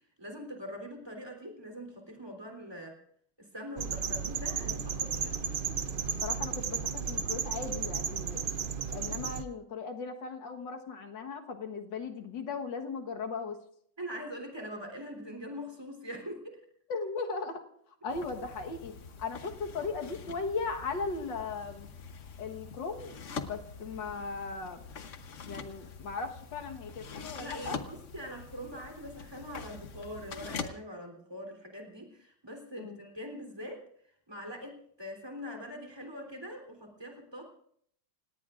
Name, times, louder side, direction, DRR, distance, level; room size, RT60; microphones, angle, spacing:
voice 1, 0.2-3.0 3.4-5.4 14.0-16.6 27.4-33.8 34.3-37.4, equal, 15° right, 2 dB, 3.4 m, -43 dB
sound 1, 3.8-9.4, right 6 dB, 75° right, 0.4 m, -34 dB
voice 2, 6.2-8.5 8.9-13.6 16.9-17.6 18.0-21.9 22.4-23.2 23.4-24.9 25.5-27.8 32.8-33.0, left 4 dB, 80° left, 4 dB, 2.1 m, -37 dB
sound 2, 18.1-30.7, left 5 dB, 50° left, 1.1 m, -44 dB
28.5 x 18.0 x 2.5 m, 0.66 s
omnidirectional pair, 2.0 m